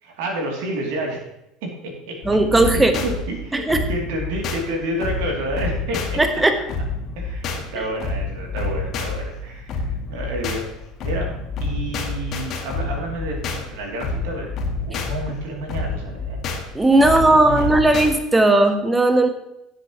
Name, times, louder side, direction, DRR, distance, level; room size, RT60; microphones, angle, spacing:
voice 1, 0.0-1.2 1.6-2.2 2.7-6.2 7.2-10.7 11.0-14.5 14.8-16.4 17.0-17.7, right 1 dB, 60° right, 0 dB, 3.1 m, -30 dB
sound 1, 2.2-18.1, left 3 dB, 45° left, 2.0 m, -29 dB
voice 2, 2.2-2.9 3.5-3.9 6.2-6.6 7.8-7.9 14.9-15.0 16.7-19.3, right 2 dB, 10° right, 7 dB, 1.4 m, -17 dB
16.5 x 7.8 x 3.2 m, 0.87 s
figure-of-eight pair, 70°, 0 cm